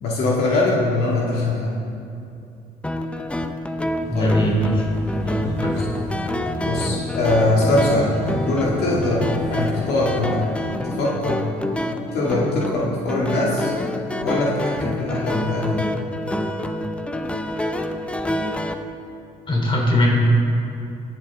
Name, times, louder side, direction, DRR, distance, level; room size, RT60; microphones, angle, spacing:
voice 1, 0.0-1.7 4.1-4.4 5.8-5.9 6.6-8.1 8.4-10.4 10.8-11.5 12.1-13.7 14.2-15.9, left 2 dB, 75° left, -5 dB, 1.9 m, -22 dB
sound 1, 2.8-18.7, left 1 dB, 5° left, 0.6 m, -27 dB
sound 2, 4.0-10.8, equal, 50° left, 3.3 m, -35 dB
voice 2, 4.1-4.9 5.2-5.8 19.5-20.1, equal, 30° left, -2 dB, 3.3 m, -20 dB
22.0 x 7.5 x 3.6 m, 2.6 s
cardioid pair, 110°, 17 cm